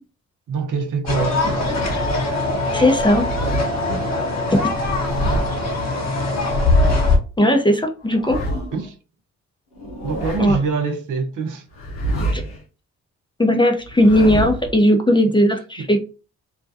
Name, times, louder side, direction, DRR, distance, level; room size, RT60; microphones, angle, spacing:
voice 1, 0.5-1.8 3.6-3.7 8.7-8.9 10.0-11.6 15.4-15.5, right 4 dB, 60° right, 0.7 m, -25 dB
sound 1, 1.1-7.2, left 2 dB, 45° left, 1.1 m, -21 dB
sound 2, 1.3-2.2 3.0-3.7 4.8-5.7 6.5-7.1 8.0-8.9 9.7-10.7 11.7-12.6 13.8-14.7, right 1 dB, 85° left, 0.7 m, -27 dB
voice 2, 2.7-3.3 7.4-8.4 10.4-10.6 12.3-12.4 13.4-16.0, left 1 dB, 15° left, 0.6 m, -17 dB
2.4 x 2.2 x 2.6 m
hypercardioid pair, 45°, 36 cm